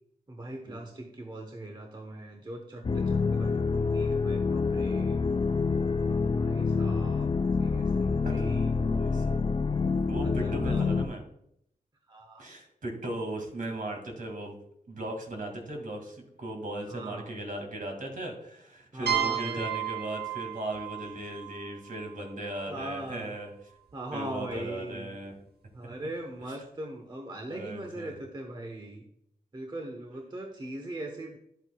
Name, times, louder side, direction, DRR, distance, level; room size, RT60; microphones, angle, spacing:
voice 1, 0.3-5.2 6.3-7.3 7.6-8.7 10.2-10.9 12.1-12.5 16.9-17.4 18.9-19.8 22.7-23.4 23.9-25.2 25.7-29.0 29.5-31.4, right 1 dB, 30° right, 2 dB, 1.0 m, -40 dB
sound 1, 2.8-11.1, left 4 dB, 30° left, 0.4 m, -27 dB
voice 2, 8.2-8.7 9.0-9.4 10.1-11.2 12.4-14.6 14.9-23.5 24.1-25.3 25.8-25.9 26.5-26.6 27.5-28.2, right 1 dB, 60° right, 2 dB, 2.1 m, -37 dB
sound 2, 19.1-22.7, right 10 dB, 90° right, 1.0 m, -34 dB
11.0 x 7.9 x 2.3 m, 0.72 s
wide cardioid pair, 135°, 16 cm